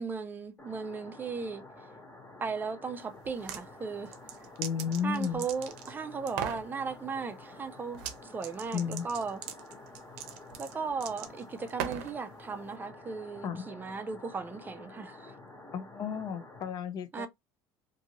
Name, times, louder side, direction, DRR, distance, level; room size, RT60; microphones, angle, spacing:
voice 1, 0.0-1.6 2.4-4.1 5.0-9.4 10.6-15.3 17.1-17.3, right 5 dB, 20° right, 0.4 m, -36 dB
sound 1, 0.6-16.7, left 2 dB, 25° left, 1.0 m, -50 dB
sound 2, 3.2-3.6 4.1-5.9 6.3-6.7 7.9-8.2 8.4-12.2, right 10 dB, 90° right, 0.6 m, -39 dB
voice 2, 4.6-5.4 8.7-9.1 13.4-13.7 15.7-17.3, left 7 dB, 45° left, 0.4 m, -33 dB
2.6 x 2.5 x 2.8 m
cardioid pair, 125°, 9 cm